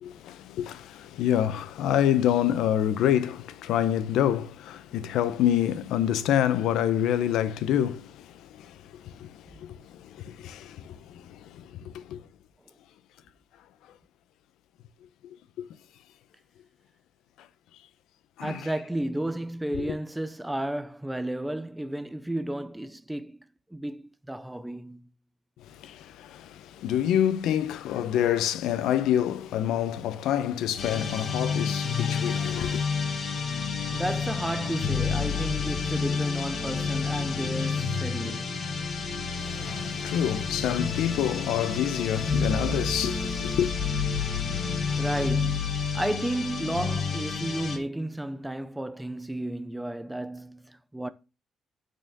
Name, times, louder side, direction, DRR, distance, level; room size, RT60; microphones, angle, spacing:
voice 1, 0.0-12.2 15.6-15.7 18.4-18.6 19.8-19.9 25.7-32.9 39.4-43.7, left 10 dB, 80° left, 0.6 m, -27 dB
voice 2, 18.4-25.1 33.9-38.5 44.6-44.7 45.0-51.1, right 1 dB, 5° right, 0.4 m, -33 dB
sound 1, 30.8-47.8, left 5 dB, 35° left, 1.2 m, -29 dB
6.2 x 4.4 x 5.2 m
cardioid pair, 175°, 0 cm